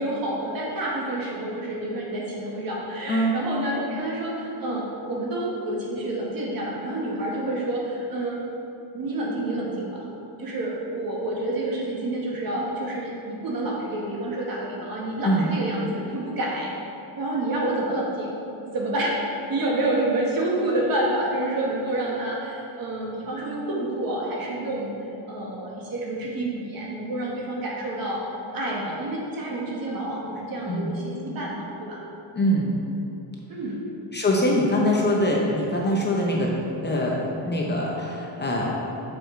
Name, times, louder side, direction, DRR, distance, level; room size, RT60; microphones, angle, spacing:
voice 1, 0.0-8.4 8.9-10.1 10.4-16.7 17.2-18.3 18.7-19.2 19.5-24.9 25.3-28.2 28.5-32.0 33.5-33.8, right 1 dB, 45° right, -3 dB, 1.5 m, -28 dB
voice 2, 32.3-32.7 34.1-36.5 36.8-38.7, equal, 25° left, -2 dB, 0.7 m, -23 dB
6.9 x 5.0 x 4.4 m, 2.9 s
cardioid pair, 135°, 46 cm